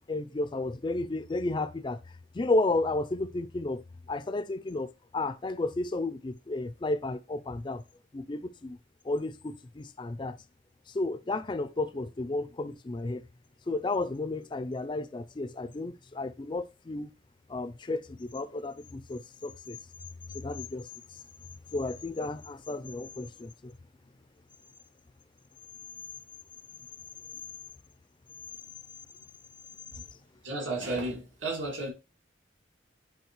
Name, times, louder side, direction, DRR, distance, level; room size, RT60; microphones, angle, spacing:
voice 1, 0.0-2.0 2.3-7.8 8.1-8.8 9.0-10.4 10.9-13.3 13.7-17.1 17.5-19.8 20.3-21.2 21.7-23.7, left 2 dB, 25° left, 0.3 m, -32 dB
voice 2, 30.4-31.9, right 2 dB, 80° right, 2.5 m, -33 dB
9.5 x 4.0 x 3.0 m
head